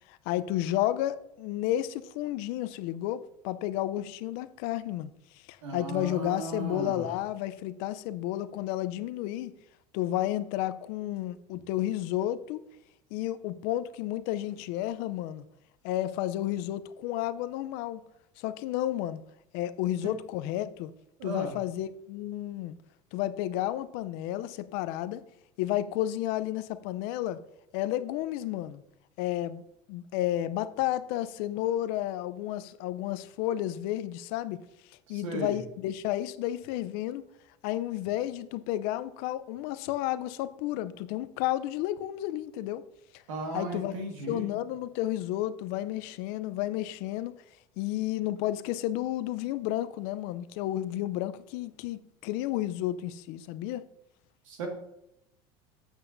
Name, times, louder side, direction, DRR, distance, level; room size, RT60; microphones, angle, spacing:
voice 1, 0.1-5.1 5.5-9.5 9.9-12.6 13.1-15.5 15.8-18.0 18.4-19.2 19.5-20.9 21.2-22.8 23.1-25.2 25.6-27.4 27.7-28.8 29.2-29.6 29.9-34.6 35.1-37.2 37.6-42.8 43.5-43.9 44.3-47.4 47.8-53.8, left 13 dB, 70° left, 0.5 m, -32 dB
voice 2, 5.6-7.0 19.9-20.1 21.2-21.5 35.1-35.5 43.3-44.5 54.5-54.7, right 3 dB, 90° right, 1.7 m, -36 dB
8.0 x 7.9 x 2.6 m
supercardioid pair, 100°, 16 cm